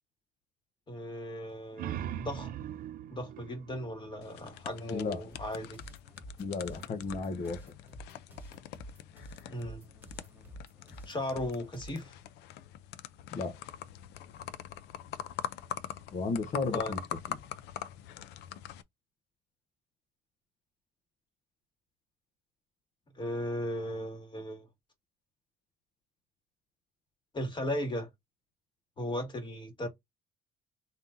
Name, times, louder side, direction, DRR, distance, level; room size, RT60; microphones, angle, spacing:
voice 1, 0.9-2.5 3.1-5.8 9.5-9.8 11.1-12.2 16.7-16.9 23.2-24.7 27.3-28.1 29.0-29.9, left 1 dB, 30° left, 2.0 m, -36 dB
sound 1, 1.5-4.9, right 11 dB, 60° right, 0.5 m, -41 dB
sound 2, 4.2-18.8, left 11 dB, 90° left, 0.5 m, -43 dB
voice 2, 4.9-5.2 6.4-7.6 13.3-13.6 16.1-17.0 17.3-17.4, left 4 dB, 45° left, 0.9 m, -34 dB
sound 3, 5.3-12.1, right 1 dB, 10° right, 1.9 m, -50 dB
4.2 x 3.5 x 2.6 m
cardioid pair, 110°, 17 cm